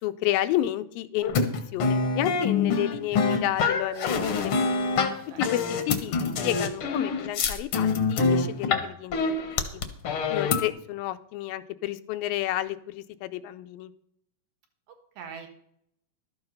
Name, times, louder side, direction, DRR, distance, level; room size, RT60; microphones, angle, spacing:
voice 1, 0.0-1.3 1.7-4.6 5.4-6.2 6.4-9.8 10.3-13.9, left 14 dB, 85° left, 10 dB, 2.3 m, -31 dB
sound 1, 1.2-8.8 9.1-10.7, left 4 dB, 65° left, 1.4 m, -25 dB
voice 2, 5.1-5.4 14.9-15.5, right 6 dB, 75° right, 4 dB, 3.3 m, -43 dB
12.5 x 8.0 x 5.4 m, 0.72 s
omnidirectional pair, 4.1 m